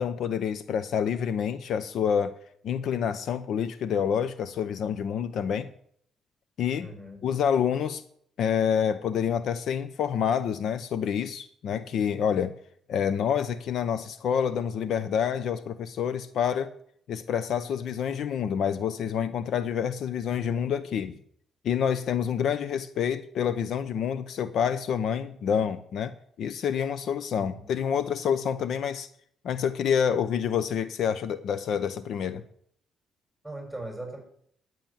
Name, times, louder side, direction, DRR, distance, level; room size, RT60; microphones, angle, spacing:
voice 1, 0.0-2.3 2.6-5.7 6.6-6.9 7.2-8.0 8.4-12.5 12.9-16.7 17.1-21.2 21.6-26.1 26.4-29.1 29.4-32.4, left 8 dB, 70° left, 13 dB, 0.7 m, -27 dB
voice 2, 6.8-7.2 27.4-27.7 33.4-34.2, right 1 dB, ahead, 2 dB, 6.9 m, -39 dB
11.5 x 9.3 x 7.3 m, 0.66 s
cardioid pair, 90°, 0 cm